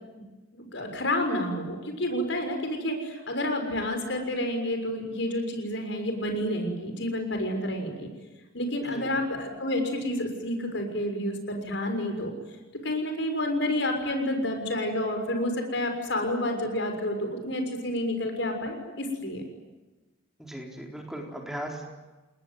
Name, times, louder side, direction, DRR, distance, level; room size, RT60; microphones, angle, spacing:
voice 1, 0.5-8.1 8.5-12.3 12.8-19.4, left 1 dB, 65° left, 5 dB, 6.5 m, -29 dB
voice 2, 20.4-21.9, right 1 dB, ahead, 1 dB, 4.0 m, -38 dB
29.5 x 20.5 x 9.4 m, 1.2 s
head